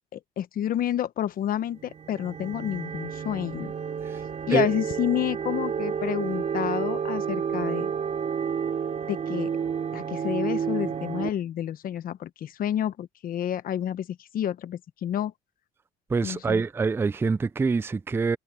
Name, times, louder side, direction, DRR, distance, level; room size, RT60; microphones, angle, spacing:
voice 1, 0.1-3.7 4.5-7.9 9.1-9.5 9.9-15.3 16.2-16.6, left 10 dB, 55° left, 1.0 m, -29 dB
sound 1, 1.7-11.3, right 7 dB, 40° right, 3.2 m, -30 dB
voice 2, 16.1-18.4, right 4 dB, 15° right, 0.4 m, -25 dB
cardioid pair, 110°, 17 cm